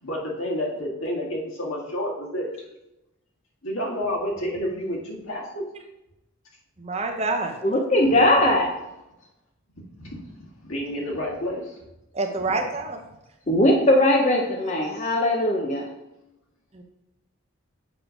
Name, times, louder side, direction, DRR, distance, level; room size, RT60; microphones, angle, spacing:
voice 1, 0.0-2.6 3.6-5.6 8.0-8.1 10.0-10.3 10.6-11.8, equal, 75° left, -3 dB, 1.7 m, -30 dB
voice 2, 6.8-7.6 12.1-13.0 16.7-16.8, right 3 dB, 30° right, 4 dB, 0.6 m, -27 dB
voice 3, 7.6-8.7 13.5-15.9, left 1 dB, 35° left, 1 dB, 0.6 m, -20 dB
7.8 x 3.1 x 5.1 m, 0.93 s
head